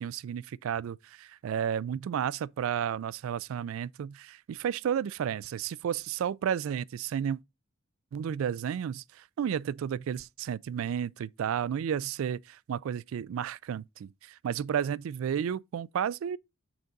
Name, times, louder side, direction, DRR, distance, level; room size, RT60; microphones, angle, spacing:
voice 1, 0.0-7.4 8.1-16.4, right 8 dB, 75° right, 0.3 m, -32 dB
5.9 x 3.8 x 5.2 m
head